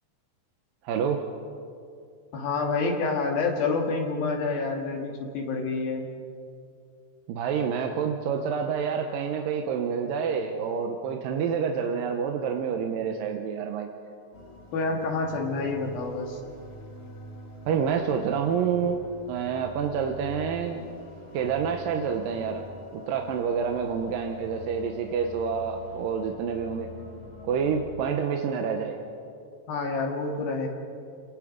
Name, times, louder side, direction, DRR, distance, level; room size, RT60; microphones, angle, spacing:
voice 1, 0.8-1.2 7.3-13.9 17.7-20.8 21.3-22.6 22.9-26.9 27.5-29.0, right 6 dB, 80° right, 4 dB, 2.7 m, -28 dB
voice 2, 2.3-6.1 14.7-16.4 29.7-30.7, left 3 dB, 85° left, 1 dB, 3.7 m, -28 dB
sound 1, 14.3-28.1, left 1 dB, 45° left, 3.6 m, -46 dB
28.5 x 19.0 x 5.2 m, 2.4 s
omnidirectional pair, 4.1 m